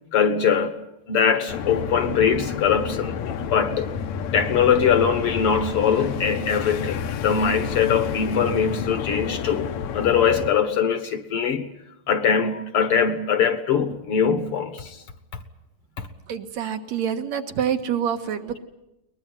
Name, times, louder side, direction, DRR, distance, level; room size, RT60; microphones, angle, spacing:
voice 1, 0.1-3.2 3.5-3.9 4.3-9.7 9.9-11.7 12.1-15.0, left 7 dB, 55° left, 1.9 m, -22 dB
sound 1, 1.5-10.5, left 7 dB, 75° left, 2.5 m, -30 dB
voice 2, 16.3-18.6, right 8 dB, 70° right, 2.8 m, -26 dB
22.0 x 20.5 x 9.5 m
omnidirectional pair, 3.3 m